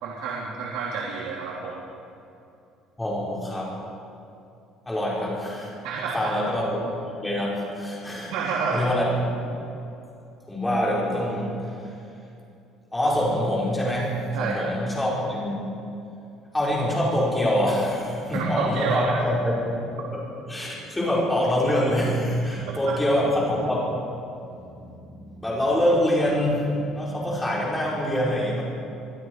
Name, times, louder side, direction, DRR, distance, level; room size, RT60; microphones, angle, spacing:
voice 1, 0.0-1.8 5.8-6.3 8.3-8.9 14.3-14.7 18.3-19.1 22.9-23.0, right 5 dB, 75° right, -3 dB, 3.4 m, -29 dB
voice 2, 3.0-3.7 4.9-5.7 6.1-8.3 8.7-9.6 10.5-11.6 12.9-15.5 16.5-19.8 20.5-23.8 24.5-28.6, equal, 5° left, -5 dB, 5.3 m, -25 dB
25.0 x 22.5 x 4.9 m, 2.6 s
cardioid pair, 175°, 0 cm